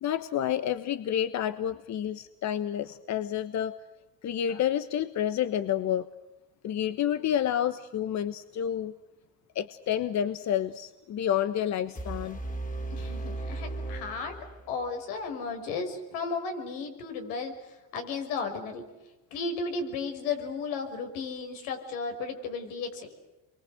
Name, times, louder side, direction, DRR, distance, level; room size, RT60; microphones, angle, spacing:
voice 1, 0.0-3.8 4.2-6.1 6.6-8.9 9.5-12.4, left 10 dB, 55° left, 12 dB, 1.3 m, -29 dB
sound 1, 11.9-14.9, right 2 dB, 25° left, 2.9 m, -36 dB
voice 2, 12.9-14.4 14.7-18.8 19.3-23.1, left 4 dB, 85° left, 5 dB, 5.8 m, -34 dB
29.0 x 23.5 x 7.9 m, 1.0 s
supercardioid pair, 90°, 33 cm